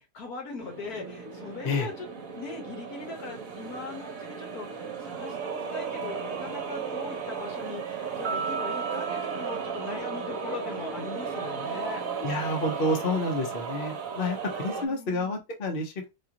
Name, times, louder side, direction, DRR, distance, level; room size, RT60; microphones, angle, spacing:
voice 1, 0.0-2.1 2.3-12.0 14.8-15.4, left 4 dB, 70° left, 1.7 m, -40 dB
sound 1, 0.6-14.9, right 6 dB, 65° right, 1.2 m, -35 dB
sound 2, 8.2-10.8, right 5 dB, 80° right, 0.5 m, -36 dB
voice 2, 12.2-16.1, left 2 dB, 45° left, 0.9 m, -29 dB
4.9 x 2.4 x 2.9 m
omnidirectional pair, 1.7 m